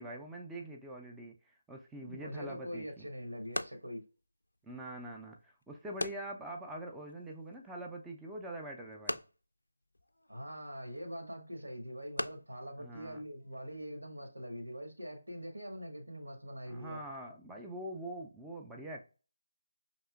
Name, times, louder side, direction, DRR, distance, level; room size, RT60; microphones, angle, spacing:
voice 1, 0.0-3.1 4.6-9.2 12.8-13.2 16.7-19.0, right 1 dB, 5° right, 0.4 m, -44 dB
voice 2, 2.0-4.0 10.3-17.0, equal, 80° right, 1.1 m, -43 dB
sound 1, 2.5-13.9, left 1 dB, 75° left, 0.3 m, -45 dB
5.4 x 2.9 x 2.3 m
figure-of-eight pair, 155°, 0 cm